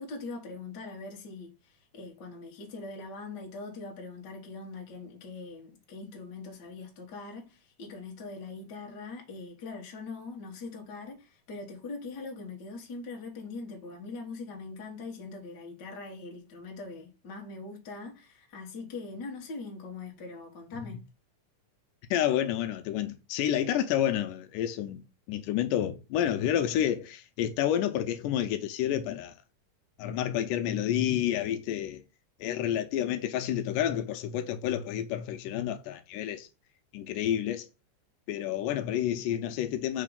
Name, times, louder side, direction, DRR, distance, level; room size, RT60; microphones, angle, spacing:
voice 1, 0.0-21.0, left 3 dB, 50° left, 1.3 m, -42 dB
voice 2, 22.1-25.0 25.3-29.3 30.0-32.0 32.4-36.5 36.9-37.7 38.3-40.0, left 11 dB, 85° left, 2.2 m, -29 dB
5.0 x 3.8 x 5.0 m
omnidirectional pair, 3.9 m